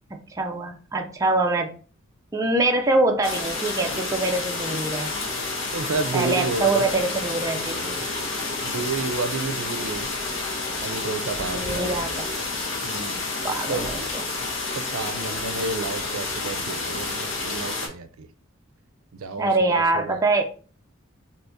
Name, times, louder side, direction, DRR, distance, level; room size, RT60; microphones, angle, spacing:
voice 1, 0.1-1.7 2.3-5.1 6.1-8.0 11.5-12.3 13.4-14.2 19.4-20.4, right 2 dB, 15° right, 2 dB, 0.4 m, -24 dB
sound 1, 3.2-17.9, left 3 dB, 65° left, 0.9 m, -29 dB
voice 2, 5.7-6.8 8.6-10.1 10.8-12.0 12.8-13.2 13.7-13.8 14.8-18.3 19.1-20.3, right 4 dB, 80° right, 9 dB, 0.4 m, -30 dB
2.8 x 2.7 x 3.5 m, 0.39 s
head